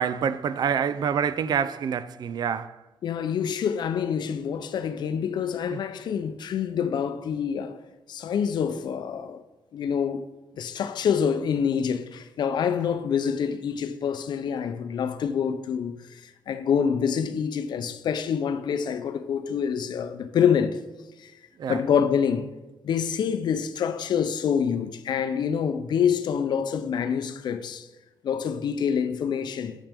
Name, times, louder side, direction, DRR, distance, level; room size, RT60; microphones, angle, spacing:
voice 1, 0.0-2.8 5.7-5.8 21.6-21.8, right 7 dB, 65° right, 0.4 m, -26 dB
voice 2, 3.0-7.8 8.1-9.4 9.7-10.3 10.6-16.2 16.5-20.8 21.2-21.3 21.7-22.5 22.8-27.9 28.2-29.7, left 7 dB, 70° left, 0.5 m, -26 dB
8.9 x 6.6 x 3.5 m
cardioid pair, 100°, 8 cm